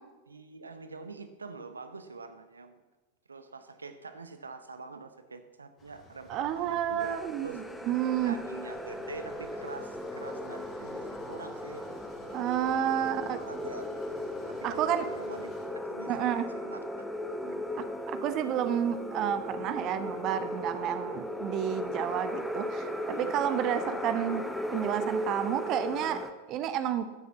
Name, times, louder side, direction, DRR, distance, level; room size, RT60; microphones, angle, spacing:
voice 1, 0.3-2.8 3.3-7.2 7.4-7.6 8.2-11.9 12.4-13.9 14.5-17.1 17.4-17.7 23.1-23.3, right 4 dB, 75° right, 9 dB, 0.9 m, -45 dB
sound 1, 5.8-15.7, left 2 dB, 25° left, 3.7 m, -55 dB
voice 2, 6.3-8.4 12.3-13.4 14.6-15.1 16.1-16.4 17.8-24.4 24.7-26.2 26.5-27.1, right 10 dB, 35° right, 11 dB, 0.9 m, -30 dB
sound 2, 7.0-26.3, left 1 dB, 5° left, 1.1 m, -37 dB
14.0 x 7.5 x 7.3 m, 1.2 s
figure-of-eight pair, 90°, 0 cm